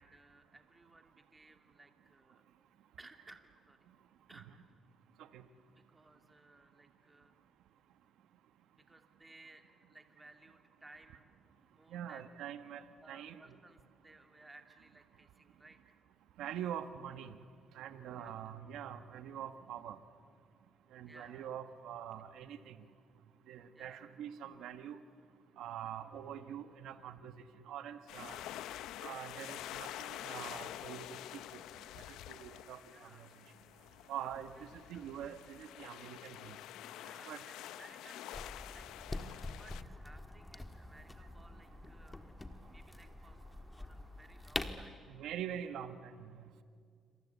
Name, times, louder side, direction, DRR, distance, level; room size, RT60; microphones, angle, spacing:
voice 1, 0.0-2.5 3.0-3.9 4.3-4.5 5.7-7.3 8.7-11.3 11.6-12.3 13.0-15.8 18.1-18.4 21.1-21.5 22.2-22.3 23.7-24.1 28.1-28.5 32.8-33.4 33.9-35.1 36.9-42.3 42.6-43.4 43.8-45.1, right 2 dB, 15° right, 5 dB, 2.6 m, -60 dB
voice 2, 11.9-13.4 16.4-17.3 17.7-20.0 20.9-22.8 23.5-25.0 25.6-27.3 27.6-28.4 29.0-31.6 32.3-32.8 34.1-36.6 37.3-37.4 45.1-46.3, right 9 dB, 85° right, 10 dB, 1.2 m, -44 dB
sound 1, 28.1-39.8, left 13 dB, 90° left, 0.7 m, -47 dB
sound 2, 38.3-44.9, left 2 dB, 15° left, 1.7 m, -45 dB
27.0 x 25.5 x 8.3 m, 2.2 s
cardioid pair, 90°, 0 cm